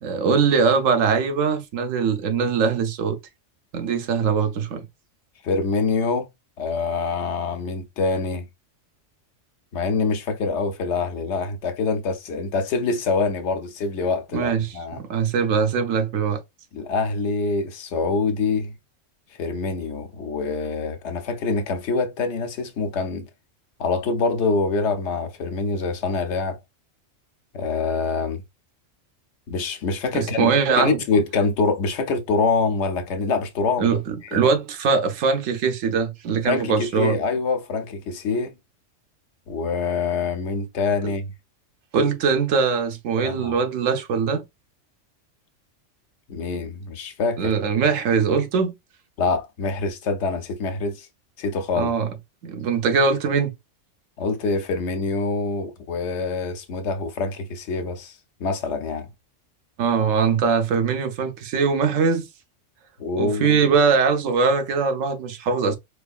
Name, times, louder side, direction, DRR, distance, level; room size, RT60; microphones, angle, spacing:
voice 1, 0.0-3.2 3.7-4.9 14.3-16.4 30.1-31.0 33.8-37.2 41.0-41.1 41.9-44.5 47.4-48.8 51.7-52.1 52.4-53.5 59.8-62.3 63.2-65.8, right 5 dB, 90° right, 1.1 m, -21 dB
voice 2, 5.4-6.3 6.6-8.5 9.7-15.0 16.7-18.7 19.3-23.3 23.8-26.6 27.5-28.4 29.5-33.9 34.3-34.5 36.4-38.5 39.5-41.3 43.2-43.6 46.3-47.5 49.2-51.1 51.4-51.9 54.2-59.1 63.0-63.6, left 4 dB, 65° left, 1.0 m, -25 dB
4.5 x 2.5 x 2.4 m
omnidirectional pair, 1.3 m